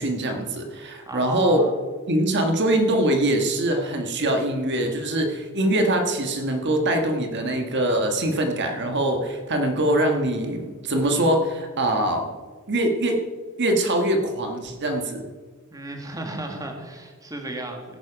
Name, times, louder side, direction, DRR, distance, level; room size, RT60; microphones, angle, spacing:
voice 1, 0.0-1.7 2.1-12.3 12.7-13.2 13.6-15.2, right 1 dB, 55° right, 4 dB, 1.4 m, -23 dB
voice 2, 1.1-1.7 15.7-18.0, right 1 dB, 15° right, 3 dB, 1.8 m, -34 dB
16.5 x 9.3 x 5.0 m, 1.4 s
head